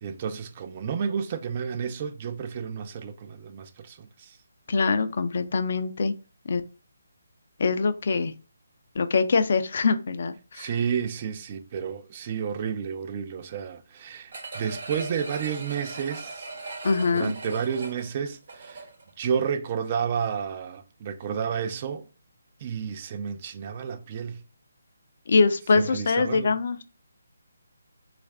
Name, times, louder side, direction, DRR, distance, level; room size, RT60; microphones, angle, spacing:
voice 1, 0.0-4.4 10.5-16.5 17.1-18.9 19.2-22.1 22.6-24.4 25.7-26.5, right 7 dB, 30° right, 0.4 m, -31 dB
voice 2, 4.7-6.1 6.5-6.6 7.6-8.3 9.0-10.7 16.8-17.3 25.3-26.8, left 4 dB, 55° left, 0.4 m, -23 dB
sound 1, 14.3-19.1 19.5-19.6, right 3 dB, 55° right, 1.0 m, -39 dB
3.2 x 2.4 x 3.2 m
figure-of-eight pair, 160°, 0 cm